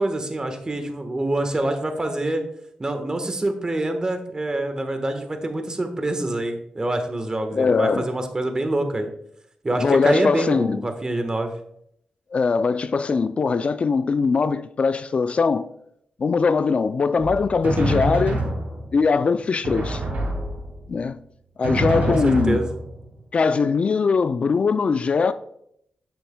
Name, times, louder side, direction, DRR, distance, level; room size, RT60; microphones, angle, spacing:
voice 1, 0.0-2.4 2.8-9.1 9.6-11.5 22.1-22.7, right 2 dB, 30° right, 1.2 m, -26 dB
voice 2, 7.5-8.1 9.7-10.8 12.3-15.7 16.2-18.4 18.9-20.0 20.9-21.2 21.6-22.6 23.3-25.3, left 5 dB, 50° left, 0.3 m, -21 dB
Drum, 17.2-19.1 19.6-21.0 21.6-23.1, right 1 dB, 80° right, 2.4 m, -26 dB
9.2 x 6.9 x 2.2 m
cardioid pair, 70°, 3 cm